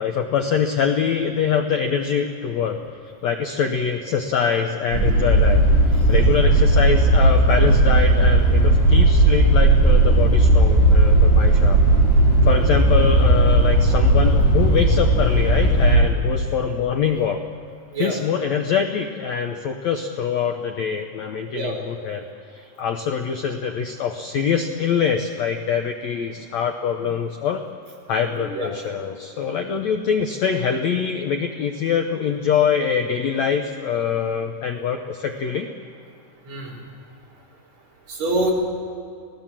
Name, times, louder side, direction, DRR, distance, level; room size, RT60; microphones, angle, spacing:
voice 1, 0.0-2.8 3.2-5.6 5.9-11.8 12.4-17.4 18.0-22.2 22.5-27.6 28.1-35.7, left 7 dB, 85° left, 5 dB, 1.6 m, -24 dB
sound 1, 4.9-16.0, right 1 dB, 55° left, 8.4 m, -16 dB
voice 2, 28.4-28.7 36.5-36.8 38.1-38.5, right 2 dB, 45° right, -1 dB, 5.6 m, -25 dB
27.0 x 18.5 x 7.5 m, 2.4 s
omnidirectional pair, 4.6 m